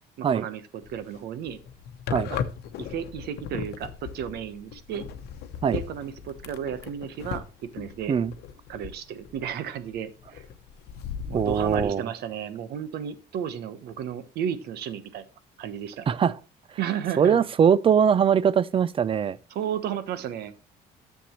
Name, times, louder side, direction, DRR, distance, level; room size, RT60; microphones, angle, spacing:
voice 1, 0.2-1.6 2.3-2.4 2.8-5.1 5.7-8.2 8.7-10.4 11.3-15.2 15.6-16.1 16.8-17.4 19.5-20.5, right 9 dB, 70° right, 1.1 m, -33 dB
sound 1, 0.8-1.2 1.5-10.0 10.2-11.9, left 8 dB, 75° left, 0.9 m, -37 dB
voice 2, 11.3-12.0 16.1-16.3 17.2-19.4, right 7 dB, 30° right, 0.5 m, -21 dB
10.0 x 7.1 x 3.1 m
cardioid pair, 110°, 17 cm